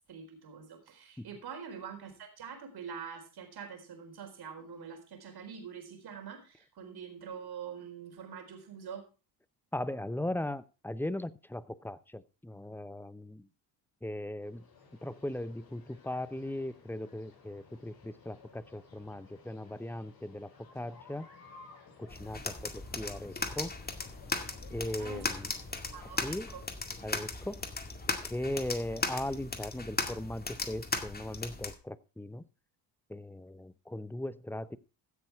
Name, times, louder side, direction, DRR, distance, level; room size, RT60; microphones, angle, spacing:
voice 1, 0.1-9.1 25.0-25.3 25.9-26.6, right 7 dB, 55° right, 5 dB, 4.2 m, -45 dB
voice 2, 9.7-13.5 14.0-14.7 15.0-21.3 22.0-23.8 24.7-25.5 26.2-26.6 27.0-27.6 28.2-32.4 33.1-34.8, left 1 dB, 5° left, 16 dB, 0.7 m, -38 dB
sound 1, 14.4-26.5, left 4 dB, 50° left, 6.8 m, -57 dB
sound 2, 22.1-31.7, left 3 dB, 20° left, 2.1 m, -37 dB
15.5 x 6.8 x 4.7 m, 0.33 s
supercardioid pair, 75°, 45 cm